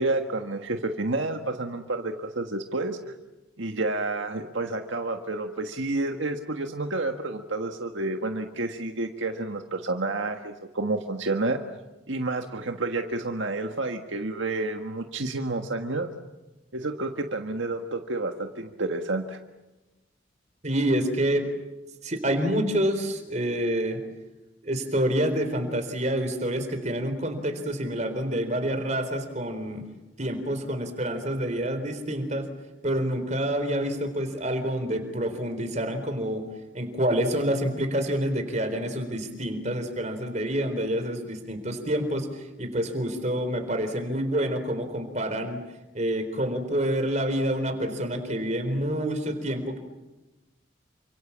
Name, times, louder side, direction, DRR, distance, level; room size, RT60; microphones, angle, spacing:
voice 1, 0.0-3.0 3.6-11.6 12.1-16.1 16.7-19.4, right 2 dB, 75° right, 5 dB, 1.6 m, -29 dB
voice 2, 20.6-21.5 22.0-24.0 24.6-29.8 30.2-32.5 32.8-36.4 36.7-45.6 45.9-49.8, right 1 dB, 35° right, 7 dB, 4.2 m, -27 dB
29.0 x 25.5 x 7.4 m, 1.1 s
head